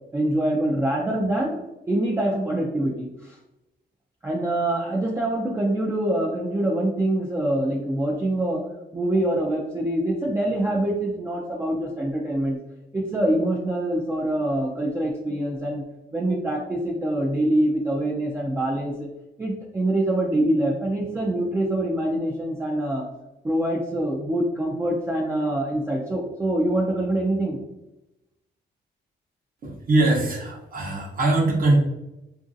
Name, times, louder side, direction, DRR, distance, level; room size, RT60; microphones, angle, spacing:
voice 1, 0.1-1.6 1.9-3.4 4.2-8.6 8.9-12.6 12.9-15.8 16.1-19.1 19.4-23.1 23.4-27.6, right 1 dB, 15° right, -3 dB, 0.4 m, -25 dB
voice 2, 29.6-31.8, right 2 dB, 45° right, 0 dB, 0.8 m, -22 dB
2.9 x 2.5 x 2.6 m, 0.94 s
cardioid pair, 125°, 19 cm